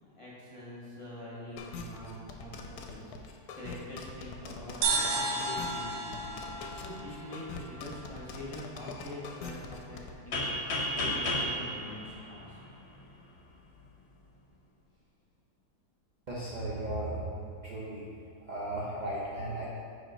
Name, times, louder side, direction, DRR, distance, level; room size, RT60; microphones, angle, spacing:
voice 1, 0.0-12.6, left 1 dB, 20° left, -7 dB, 1.0 m, -44 dB
sound 1, 1.6-10.1, left 4 dB, 75° left, 1.0 m, -43 dB
sound 2, 4.8-8.3, right 3 dB, 75° right, 1.3 m, -33 dB
sound 3, 10.3-13.1, left 1 dB, 50° left, 1.0 m, -33 dB
voice 2, 16.3-17.3 17.6-18.0 18.5-19.7, right 1 dB, 50° right, -6 dB, 0.5 m, -35 dB
5.0 x 4.3 x 5.0 m, 2.5 s
omnidirectional pair, 1.8 m